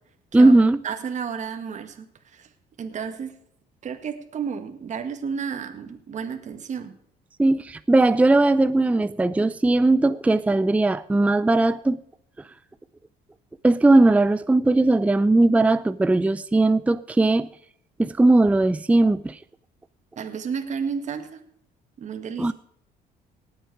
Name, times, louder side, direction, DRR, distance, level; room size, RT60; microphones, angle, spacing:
voice 1, 0.3-0.8 7.4-12.0 13.6-17.5 18.0-19.4 22.4-22.5, right 2 dB, 10° right, 0.5 m, -18 dB
voice 2, 0.8-2.1 2.3-2.5 2.8-3.3 3.8-7.0 20.2-21.4 22.0-22.5, right 6 dB, 45° right, 1.8 m, -32 dB
19.0 x 8.0 x 4.8 m
cardioid pair, 110°, 17 cm